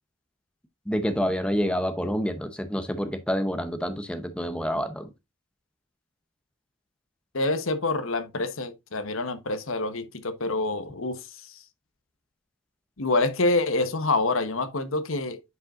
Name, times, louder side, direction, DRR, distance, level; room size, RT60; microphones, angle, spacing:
voice 1, 0.9-5.1, equal, 5° left, 0.7 m, -28 dB
voice 2, 7.3-11.6 13.0-15.4, left 2 dB, 75° left, 1.0 m, -27 dB
9.4 x 5.4 x 2.4 m
head